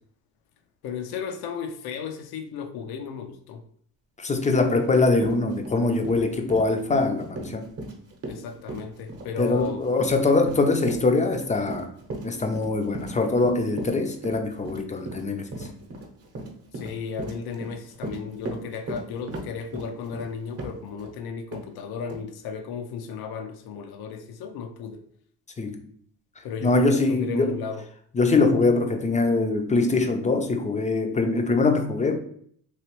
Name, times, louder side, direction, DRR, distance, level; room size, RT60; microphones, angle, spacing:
voice 1, 0.8-3.6 8.3-9.9 10.1-10.3 16.7-25.0 26.4-27.8, left 6 dB, 80° left, 7 dB, 0.5 m, -34 dB
voice 2, 4.2-7.7 9.4-11.9 12.2-15.7 25.6-25.8 26.6-27.6 28.1-32.2, left 3 dB, 20° left, 5 dB, 0.4 m, -23 dB
Run, 4.7-4.9 5.2-21.1 21.5-21.6 22.1-22.2, right 2 dB, 40° right, 0.8 m, -37 dB
3.1 x 2.9 x 3.0 m, 0.62 s
cardioid pair, 95°, 37 cm